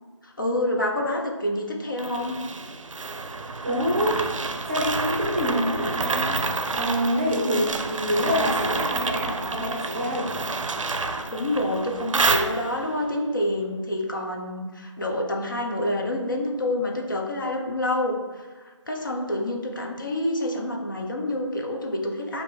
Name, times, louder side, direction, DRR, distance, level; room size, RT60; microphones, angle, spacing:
voice 1, 0.2-2.4 11.1-22.4, left 1 dB, 40° left, 1 dB, 0.5 m, -28 dB
sound 1, 2.0-13.0, right 3 dB, 80° right, 0.5 m, -28 dB
voice 2, 3.6-4.3 4.7-6.3 6.7-10.3, equal, 25° right, -2 dB, 0.7 m, -26 dB
5.2 x 2.5 x 3.2 m, 1.3 s
figure-of-eight pair, 165°, 16 cm